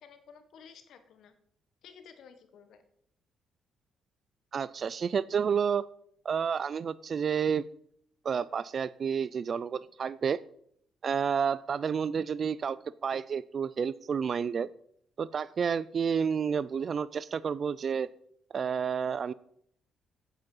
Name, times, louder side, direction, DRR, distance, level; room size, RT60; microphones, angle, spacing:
voice 1, 0.0-1.4 1.8-2.8, left 6 dB, 75° left, 9 dB, 1.4 m, -53 dB
voice 2, 4.5-5.9 6.3-7.6 8.2-10.4 11.0-12.8 13.0-14.7 15.2-18.1 18.5-19.3, right 7 dB, 50° right, 19 dB, 0.3 m, -30 dB
9.0 x 8.0 x 5.5 m, 0.67 s
cardioid pair, 90°, 0 cm